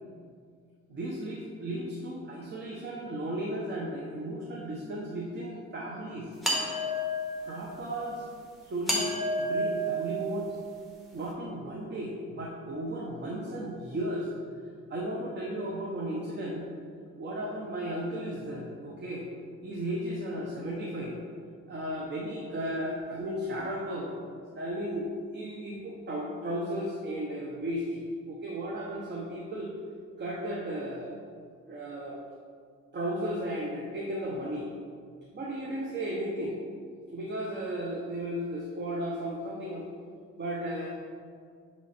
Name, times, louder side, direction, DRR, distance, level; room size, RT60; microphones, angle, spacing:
voice 1, 0.9-6.3 7.4-8.2 8.6-9.1 9.4-10.6 11.1-14.3 14.9-16.7 17.2-19.3 19.6-21.1 21.7-24.1 24.5-25.1 25.3-29.7 30.2-31.2 31.7-32.2 32.9-34.7 35.3-36.5 37.1-39.9 40.4-40.9, right 1 dB, 35° right, -3 dB, 0.9 m, -35 dB
sound 1, 6.4-7.5 8.9-10.7, equal, ahead, 1.3 m, -30 dB
7.3 x 3.1 x 4.2 m, 2.1 s
cardioid pair, 90°, 30 cm